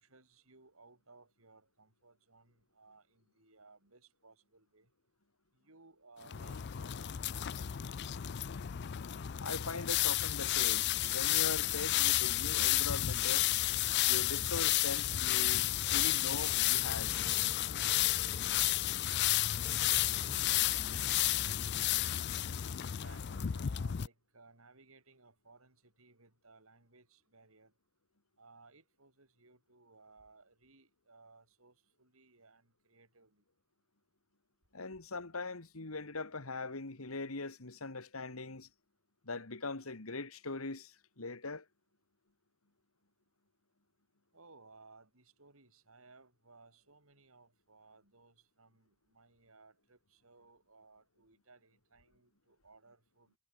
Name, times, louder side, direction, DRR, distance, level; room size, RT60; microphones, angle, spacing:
voice 1, 0.0-4.9 5.5-8.2 22.8-27.7 28.4-33.4 44.3-53.3, right 3 dB, 75° right, 4.5 m, -62 dB
sound 1, 6.3-24.1, left 14 dB, 55° left, 0.4 m, -32 dB
voice 2, 9.4-13.5 14.1-17.1 34.7-38.7 39.2-41.7, left 3 dB, 85° left, 2.1 m, -41 dB
sound 2, 16.1-22.0, left 1 dB, 20° left, 3.0 m, -52 dB
head